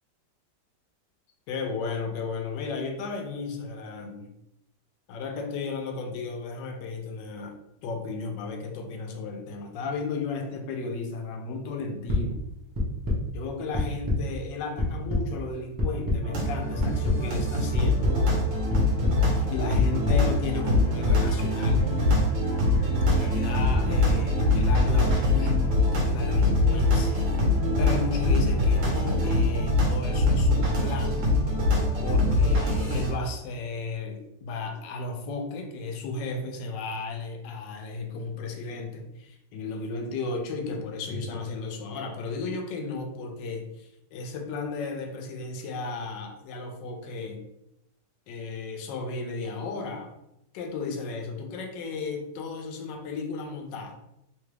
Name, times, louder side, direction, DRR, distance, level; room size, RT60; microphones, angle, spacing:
voice 1, 1.5-4.3 5.1-12.4 13.3-18.1 19.2-21.8 23.1-27.3 27.8-31.2 32.0-47.5 48.3-50.1 50.5-54.0, left 3 dB, 80° left, 4 dB, 1.2 m, -34 dB
sound 1, 12.1-12.2 12.7-13.2 13.7-14.2 14.5-15.2 15.8-16.2 16.7-17.2 17.7-18.1 18.7-19.1 19.7-20.1 20.7-21.1 21.7-22.2 22.7-23.1 23.7-24.2 24.7-25.2, left 2 dB, 25° right, 0.4 m, -25 dB
sound 2, 16.2-33.1, left 2 dB, 75° right, 1.6 m, -24 dB
3.6 x 2.2 x 3.2 m, 0.84 s
omnidirectional pair, 2.0 m